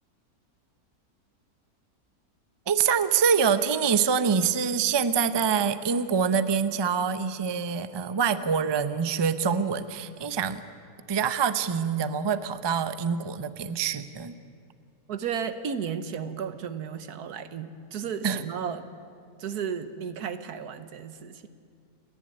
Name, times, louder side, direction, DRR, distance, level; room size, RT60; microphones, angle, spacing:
voice 1, 2.7-10.6 11.1-14.4 18.2-18.4, right 6 dB, 35° right, 12 dB, 0.4 m, -25 dB
voice 2, 15.1-18.9 19.4-21.5, right 7 dB, 85° right, 11 dB, 1.6 m, -34 dB
29.5 x 11.0 x 9.8 m, 2.2 s
omnidirectional pair, 1.6 m